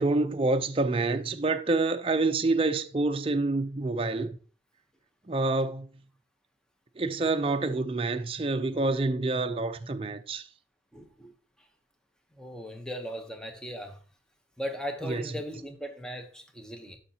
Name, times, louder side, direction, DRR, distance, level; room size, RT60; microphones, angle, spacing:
voice 1, 0.0-4.4 5.3-5.9 7.0-10.5 15.0-15.2, right 3 dB, 30° right, 0.5 m, -27 dB
voice 2, 10.9-11.3 11.6-11.7 12.4-14.0 14.6-17.0, equal, 5° left, 0.8 m, -38 dB
11.0 x 5.6 x 2.8 m
head